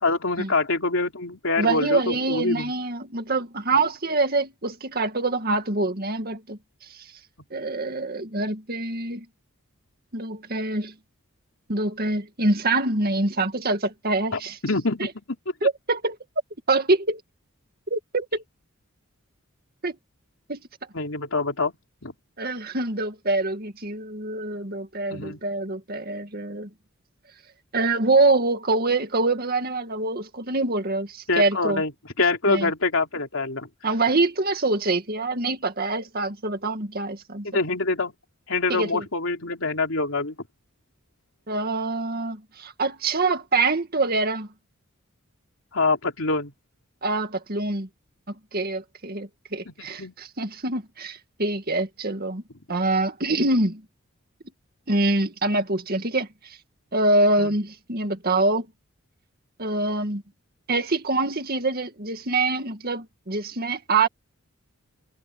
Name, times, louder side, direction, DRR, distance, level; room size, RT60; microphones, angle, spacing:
voice 1, 0.0-2.7 14.3-15.1 20.9-21.7 22.0-22.1 25.1-25.4 31.3-31.9 32.2-33.7 37.4-38.1 38.5-40.4 45.7-46.5 50.0-50.1 57.4-57.5, left 3 dB, 70° left, 3.2 m, -25 dB
voice 2, 1.6-6.6 6.9-7.0 7.5-9.3 10.1-10.9 11.7-14.6 15.0-15.1 15.6-16.2 16.7-17.2 17.9-18.4 19.8-20.0 20.5-20.6 22.4-26.7 27.7-31.8 32.5-32.7 33.8-37.5 38.7-39.0 41.5-44.5 47.0-47.9 48.3-52.4 52.7-53.8 54.9-56.6 56.9-58.7 59.6-60.2 60.7-64.1, right 2 dB, 45° right, 2.2 m, -25 dB
head